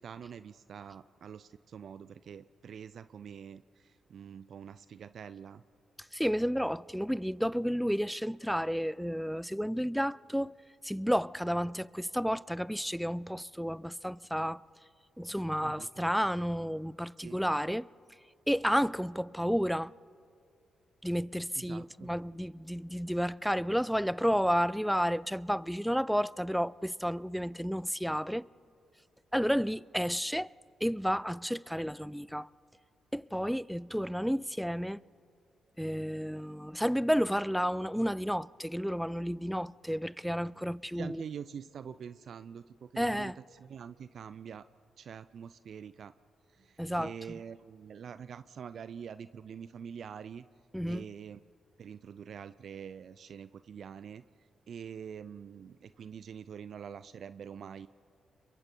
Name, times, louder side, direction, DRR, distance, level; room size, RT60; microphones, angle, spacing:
voice 1, 0.0-5.6 15.6-16.1 17.2-17.4 21.6-22.1 40.9-44.7 45.0-46.1 46.5-50.5 50.9-51.4 51.8-57.9, right 7 dB, 65° right, 0.4 m, -45 dB
voice 2, 6.1-10.5 10.8-14.6 15.2-17.9 18.5-19.9 21.0-28.5 29.3-30.5 30.8-32.5 33.1-35.0 35.8-41.2 43.0-43.4 46.8-47.1 50.7-51.0, equal, ahead, 0.4 m, -31 dB
29.5 x 22.5 x 4.5 m
hypercardioid pair, 45°, 0 cm